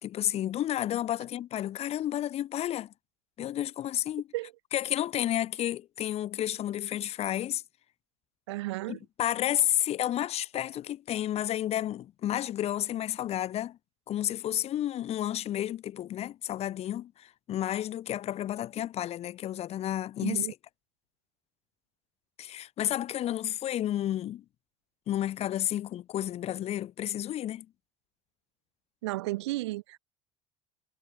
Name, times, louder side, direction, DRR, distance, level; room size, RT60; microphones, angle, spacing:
voice 1, 0.0-2.9 3.4-4.3 4.7-7.6 8.9-13.8 14.1-20.5 22.4-24.4 25.1-27.7, left 12 dB, 45° left, 2.7 m, -31 dB
voice 2, 8.5-9.0 20.2-20.5 29.0-30.0, right 19 dB, 70° right, 1.4 m, -33 dB
hypercardioid pair, 70°, 15 cm